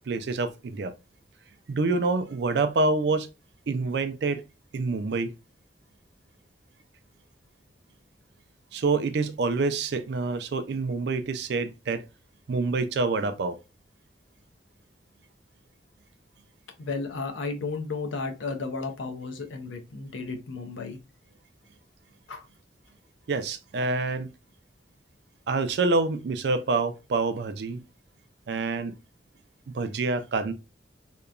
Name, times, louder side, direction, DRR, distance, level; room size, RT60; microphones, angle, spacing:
voice 1, 0.1-0.9 1.7-3.3 3.7-4.4 4.7-5.3 8.7-12.0 12.5-13.6 23.3-24.3 25.5-27.8 28.5-28.9 29.7-30.5, right 3 dB, 60° right, 0.4 m, -27 dB
voice 2, 16.8-21.0 22.3-22.4, left 4 dB, 85° left, 0.6 m, -33 dB
2.9 x 2.2 x 2.4 m
head